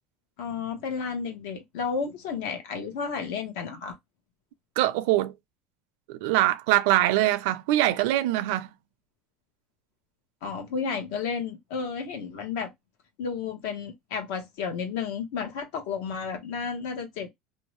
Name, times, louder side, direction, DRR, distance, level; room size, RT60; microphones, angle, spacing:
voice 1, 0.4-4.0 10.4-12.7 13.2-17.3, left 5 dB, 80° left, 1.0 m, -32 dB
voice 2, 4.8-5.3 6.1-8.7, right 15 dB, 80° right, 0.4 m, -23 dB
2.7 x 2.1 x 3.0 m
cardioid pair, 150°, 0 cm